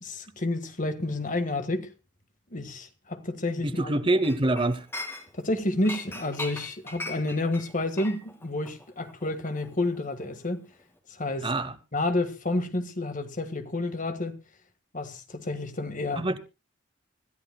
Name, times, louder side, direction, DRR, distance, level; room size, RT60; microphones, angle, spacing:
voice 1, 0.0-1.9 2.5-4.0 5.4-10.6 11.2-14.4 14.9-16.3, left 2 dB, 45° left, 1.6 m, -30 dB
voice 2, 3.6-4.9 11.4-11.7 16.2-16.4, right 2 dB, 25° right, 0.8 m, -25 dB
Chink clink, 4.2-5.5 5.8-10.5 10.7-11.0, left 2 dB, 15° left, 2.3 m, -40 dB
25.5 x 14.0 x 2.2 m
head